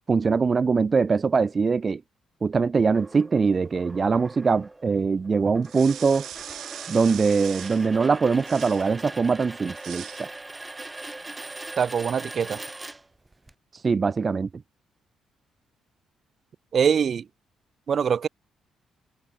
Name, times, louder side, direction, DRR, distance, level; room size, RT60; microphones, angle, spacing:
voice 1, 0.1-2.0 2.4-6.3 6.9-10.3 13.7-14.5, right 5 dB, 35° right, 0.8 m, -22 dB
sound 1, 2.9-13.5, right 2 dB, 15° right, 6.0 m, -41 dB
sound 2, 5.6-7.9 8.4-8.9 9.8-10.3, right 11 dB, 75° right, 6.4 m, -40 dB
voice 2, 11.8-12.6 16.7-17.2 17.9-18.3, right 7 dB, 50° right, 1.8 m, -23 dB
cardioid pair, 90°, 0 cm